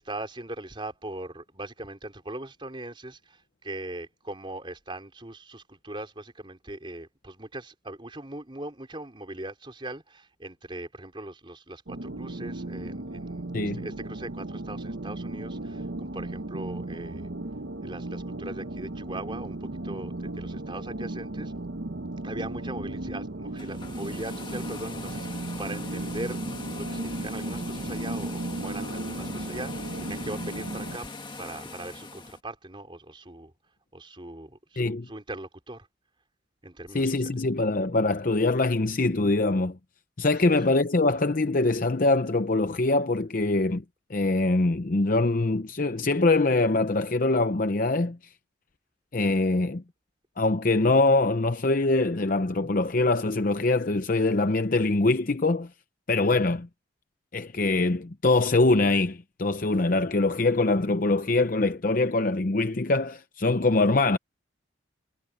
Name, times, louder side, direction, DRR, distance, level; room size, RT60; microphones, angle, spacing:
voice 1, 0.0-17.3 17.8-21.5 22.2-26.4 26.7-31.1 31.4-33.5 33.9-35.9 36.6-37.4 40.4-40.5, right 1 dB, 25° right, 4.0 m, -40 dB
sound 1, 11.9-31.0, right 2 dB, 65° right, 1.0 m, -35 dB
sound 2, 23.5-32.4, left 3 dB, 25° left, 1.9 m, -41 dB
voice 2, 34.8-35.1 36.9-39.8 40.2-43.8 44.1-48.2 49.1-49.8 50.4-55.7 56.1-56.7 57.3-64.2, left 2 dB, 45° left, 0.7 m, -23 dB
head